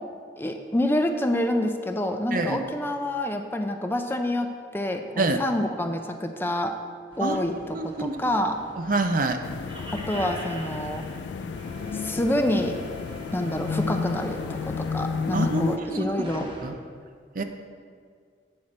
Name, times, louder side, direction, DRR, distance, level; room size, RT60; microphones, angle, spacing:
voice 1, 0.4-6.7 7.2-8.6 9.9-11.1 11.9-12.8 13.3-16.5, left 1 dB, 15° left, 5 dB, 0.4 m, -27 dB
sound 1, 7.1-16.7, equal, 30° right, 1.0 m, -42 dB
voice 2, 7.7-8.2 8.8-9.4 15.3-16.0 16.6-16.8 17.4-17.5, right 2 dB, 50° right, 7 dB, 0.6 m, -26 dB
sound 2, 9.4-15.8, left 5 dB, 80° left, 0.3 m, -32 dB
8.8 x 6.4 x 4.2 m, 2.1 s
head